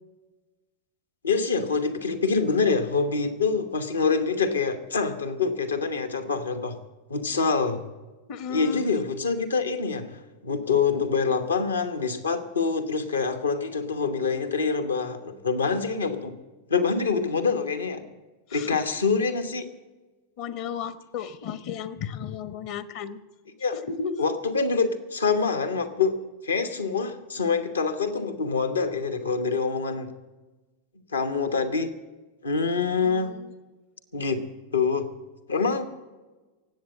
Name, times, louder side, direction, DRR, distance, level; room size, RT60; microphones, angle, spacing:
voice 1, 1.2-6.8 7.1-7.8 8.5-16.3 16.7-18.1 18.5-19.7 23.6-23.8 24.2-26.2 26.4-30.1 31.1-31.9 32.4-33.3 34.1-34.4 34.7-35.1 35.5-35.8, left 4 dB, 75° left, 9 dB, 1.1 m, -25 dB
voice 2, 8.3-8.8 18.5-18.8 20.4-23.2 23.7-24.2 33.0-33.5, left 6 dB, 45° left, 14 dB, 0.9 m, -34 dB
18.0 x 8.3 x 7.5 m, 1.2 s
figure-of-eight pair, 90°, 0 cm